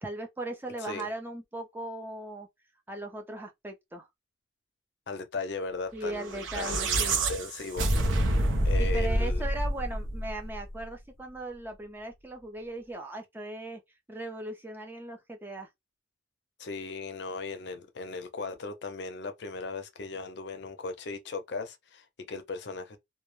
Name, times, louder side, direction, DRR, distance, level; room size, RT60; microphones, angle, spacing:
voice 1, 0.0-2.5 2.9-4.1 5.9-7.2 8.8-13.8 14.1-15.7, right 2 dB, 10° right, 0.4 m, -38 dB
voice 2, 0.8-1.1 5.1-7.9 8.6-9.4 16.6-23.0, left 3 dB, 60° left, 0.5 m, -37 dB
sound 1, 6.2-10.6, right 1 dB, 75° right, 0.6 m, -27 dB
2.1 x 2.0 x 3.0 m
head